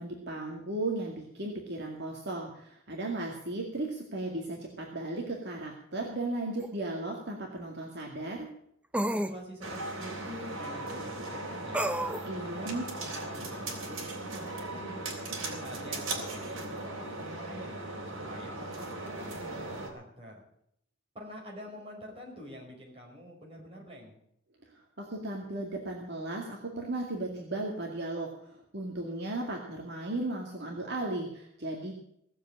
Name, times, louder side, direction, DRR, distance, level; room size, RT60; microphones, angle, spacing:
voice 1, 0.0-8.5 12.2-12.9 24.7-31.9, right 2 dB, 55° right, 0 dB, 2.2 m, -36 dB
sound 1, 6.6-6.7 8.9-9.4 11.7-12.3, right 1 dB, 5° right, 0.5 m, -30 dB
voice 2, 9.1-11.9 12.3-15.0 15.4-17.8 18.1-18.9 19.2-20.4 21.1-24.2, equal, 30° right, -1 dB, 4.9 m, -47 dB
sound 2, 9.6-19.9, right 2 dB, 70° right, 3.5 m, -38 dB
17.5 x 7.6 x 8.8 m, 0.73 s
head